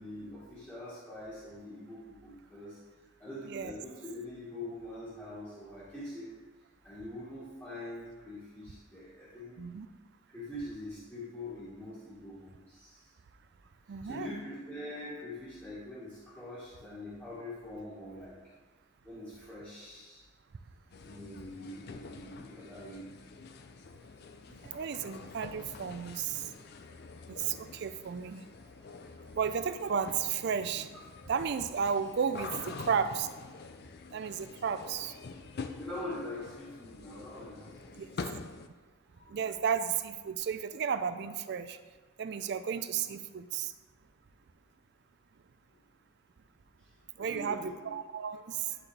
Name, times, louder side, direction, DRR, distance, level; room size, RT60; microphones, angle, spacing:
voice 1, 0.0-2.8 3.2-6.3 6.8-9.6 10.3-13.1 14.0-18.4 19.0-20.2 21.0-23.0 32.6-32.7 35.7-38.3 39.1-39.2 45.7-45.8 47.2-47.7, left 1 dB, 10° left, -11 dB, 1.6 m, -44 dB
voice 2, 13.9-14.4 24.5-26.5 27.3-28.5 29.4-31.0 31.3-33.3 34.1-35.1 38.0-38.1 39.3-41.8 42.2-43.7 47.2-48.8, right 7 dB, 55° right, 11 dB, 0.4 m, -33 dB
sound 1, 20.9-38.7, left 4 dB, 50° left, 0.4 m, -46 dB
11.0 x 4.2 x 3.3 m, 1.3 s
head